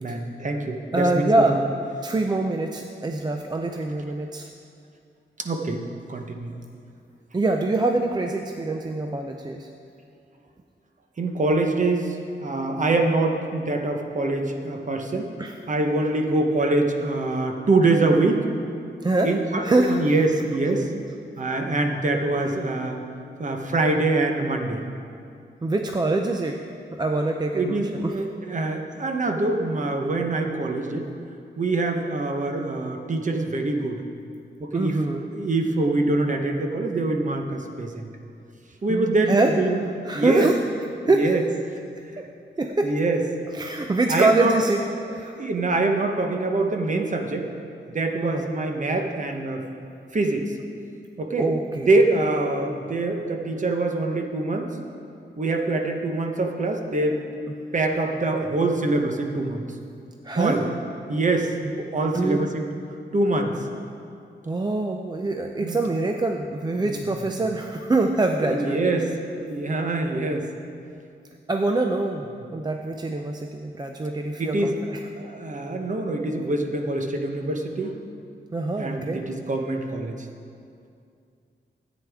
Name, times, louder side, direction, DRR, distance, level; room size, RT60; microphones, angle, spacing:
voice 1, 0.0-1.5 5.4-5.8 6.1-6.5 11.2-12.2 12.4-15.3 15.7-18.4 19.2-20.9 21.4-23.0 23.4-24.8 27.5-31.1 31.6-34.0 34.6-38.1 38.8-39.9 40.1-40.5 41.1-41.4 42.6-43.2 44.1-44.5 44.9-45.0 45.2-47.5 47.9-49.6 50.1-50.5 51.2-54.7 55.4-57.2 57.7-59.6 60.4-60.6 61.1-62.7 63.1-63.5 65.6-65.8 66.8-67.0 68.4-69.1 69.4-70.5 74.4-74.8 75.2-78.0 78.8-80.2, right 2 dB, 40° right, 3 dB, 0.9 m, -24 dB
voice 2, 0.9-1.6 2.0-4.5 7.3-9.7 15.4-15.6 19.0-19.3 19.6-20.1 25.6-26.6 27.0-28.1 34.7-35.2 38.9-39.5 40.1-40.6 41.0-41.3 42.6-42.9 43.5-44.8 45.1-45.4 48.2-48.5 51.4-51.9 60.2-60.6 62.1-62.5 64.5-69.1 71.5-72.3 72.5-75.0 78.5-79.2, right 2 dB, 20° right, 3 dB, 0.4 m, -24 dB
14.0 x 9.0 x 3.5 m, 2.4 s
wide cardioid pair, 165°, 20 cm